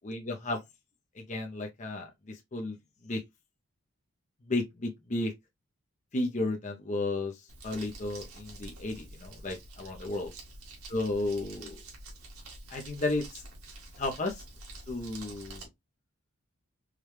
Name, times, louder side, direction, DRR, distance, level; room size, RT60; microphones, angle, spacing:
voice 1, 0.1-0.6 1.2-2.8 3.0-3.2 4.5-5.3 6.1-10.3 10.9-11.8 12.7-13.4 14.0-14.4 14.9-15.7, left 2 dB, 35° left, 0.6 m, -33 dB
Crumpling crinkling, 7.5-15.6, right 2 dB, 85° right, 1.8 m, -47 dB
4.9 x 2.2 x 3.1 m
head